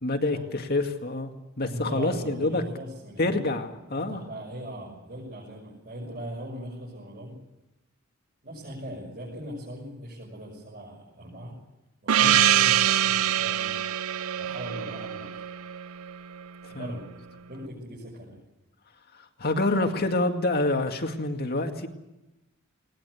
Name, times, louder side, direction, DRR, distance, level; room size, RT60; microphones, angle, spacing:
voice 1, 0.0-1.3 1.6-2.6 3.2-4.2 12.2-12.4 16.6-16.9 19.1-21.9, left 2 dB, 45° left, 5 dB, 2.1 m, -27 dB
voice 2, 1.6-3.4 4.1-7.3 8.4-11.6 12.0-13.7 14.4-15.3 16.7-17.1 17.5-18.4, right 1 dB, 40° right, -4 dB, 6.5 m, -39 dB
Gong, 12.1-16.4, right 11 dB, 85° right, 0.7 m, -24 dB
20.5 x 19.5 x 8.3 m, 0.97 s
head